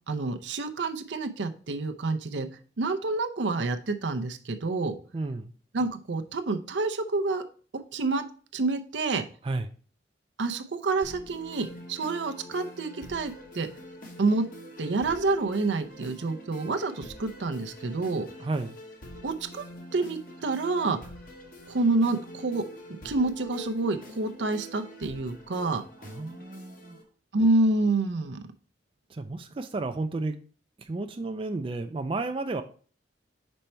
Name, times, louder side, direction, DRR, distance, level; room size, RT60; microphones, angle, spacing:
voice 1, 0.1-2.5 2.8-5.0 5.7-7.4 7.9-8.2 8.5-9.2 10.4-13.7 14.2-14.5 14.8-18.3 19.2-19.6 19.9-21.0 21.7-22.6 23.0-25.8 27.3-28.4, right 3 dB, 80° right, 7 dB, 0.6 m, -28 dB
voice 2, 5.1-5.5 9.4-9.7 18.4-18.8 26.0-27.0 29.1-30.4 30.8-32.6, right 3 dB, 30° right, 7 dB, 0.4 m, -32 dB
sound 1, 11.0-27.0, equal, 50° left, 1.1 m, -45 dB
5.3 x 4.4 x 4.4 m, 0.41 s
head